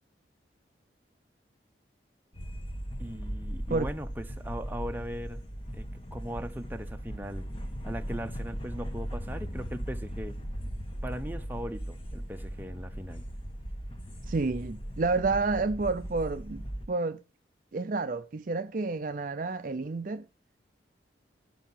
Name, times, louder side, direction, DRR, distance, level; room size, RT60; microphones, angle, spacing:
sound 1, 2.3-16.9, equal, 30° left, 1.3 m, -38 dB
voice 1, 3.0-5.4 5.7-5.8 6.1-7.5 7.8-10.4 11.0-13.3, equal, 10° right, 0.7 m, -39 dB
voice 2, 14.3-17.2 17.7-20.3, right 3 dB, 45° right, 0.5 m, -30 dB
11.0 x 5.5 x 5.7 m
head